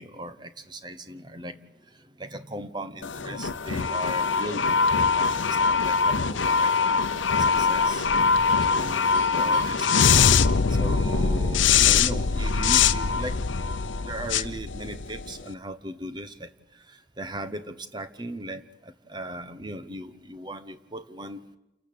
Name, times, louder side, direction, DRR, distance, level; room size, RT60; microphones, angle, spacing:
voice 1, 0.0-1.6 2.2-5.4 5.6-6.7 7.4-8.1 8.6-10.1 10.7-13.4 14.0-16.5 16.9-21.4, right 1 dB, 25° right, 11 dB, 0.9 m, -38 dB
sound 1, 3.0-15.4, left 5 dB, 80° left, 0.8 m, -23 dB
sound 2, 7.1-11.1, right 1 dB, 75° right, 1.8 m, -44 dB
28.5 x 13.0 x 8.6 m, 0.98 s
head